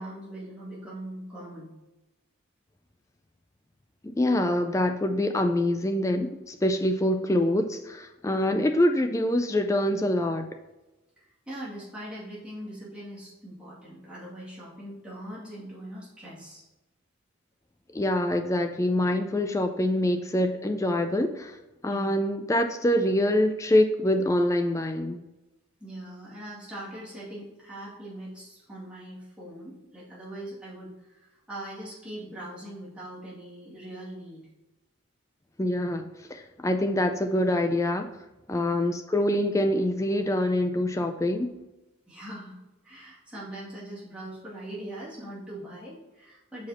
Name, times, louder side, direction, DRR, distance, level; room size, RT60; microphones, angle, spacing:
voice 1, 0.0-1.7 8.3-8.5 11.2-16.6 19.0-19.1 21.9-22.1 25.8-34.5 38.5-38.8 42.1-42.6 42.8-46.7, right 1 dB, 5° right, -8 dB, 2.3 m, -41 dB
voice 2, 4.1-10.5 17.9-21.6 21.8-25.2 35.6-36.0 36.3-38.1 38.5-41.5, left 1 dB, 15° left, 7 dB, 0.3 m, -25 dB
5.9 x 4.9 x 4.2 m, 1.0 s
head